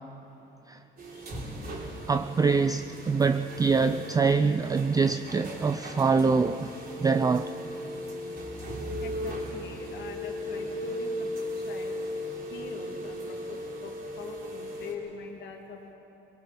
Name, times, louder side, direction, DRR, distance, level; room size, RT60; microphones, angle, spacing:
sound 1, 1.0-14.9, equal, 50° right, 3.8 m, -37 dB
voice 1, 2.1-7.5, right 4 dB, 15° right, 0.4 m, -25 dB
voice 2, 9.0-12.0 12.5-15.9, left 5 dB, 55° left, 2.3 m, -43 dB
22.0 x 22.0 x 5.9 m
cardioid pair, 125°, 21 cm